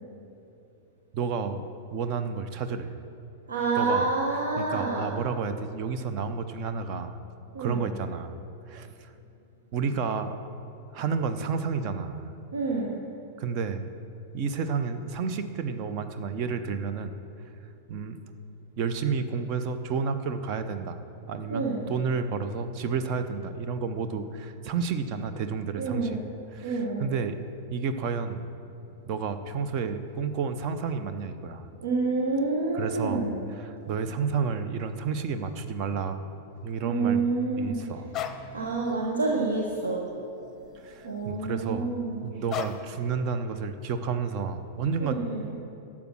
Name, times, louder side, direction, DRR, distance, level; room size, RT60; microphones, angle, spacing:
voice 1, 1.1-1.6 1.9-2.9 3.8-4.1 4.6-7.2 7.6-8.3 8.7-9.1 9.7-10.4 10.9-12.2 13.4-13.9 14.3-17.1 17.9-18.2 18.8-21.0 21.3-26.2 26.5-27.4 27.7-28.5 29.1-31.7 32.7-33.2 33.6-36.2 36.6-37.2 37.6-38.1 40.8-41.9 42.2-45.2, right 5 dB, 40° right, 9 dB, 0.8 m, -31 dB
voice 2, 3.5-5.2 7.5-7.9 12.5-13.0 21.5-21.8 25.8-26.2 26.6-27.1 31.8-33.4 36.8-37.8 38.5-40.1 41.0-42.3 45.0-45.5, right 3 dB, 70° right, -1 dB, 1.1 m, -28 dB
sound 1, 38.1-38.5 39.0-39.2 39.5-40.6 40.9-41.3 42.5-43.0, left 9 dB, 25° left, 0.7 m, -36 dB
12.0 x 7.3 x 6.2 m, 2.8 s
figure-of-eight pair, 95°, 0 cm